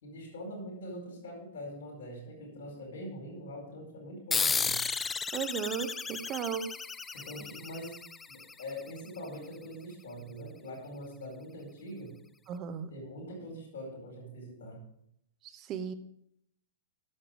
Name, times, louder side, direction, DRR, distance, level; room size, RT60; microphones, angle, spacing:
voice 1, 0.0-4.9 7.1-8.0 8.3-12.1 12.9-14.8, equal, 70° left, 0 dB, 4.5 m, -43 dB
sound 1, 4.3-9.3, left 5 dB, 15° left, 0.3 m, -34 dB
voice 2, 5.3-6.7 12.5-12.9 15.5-15.9, right 8 dB, 35° right, 12 dB, 0.9 m, -35 dB
9.8 x 7.4 x 5.2 m, 0.72 s
hypercardioid pair, 125°, 0 cm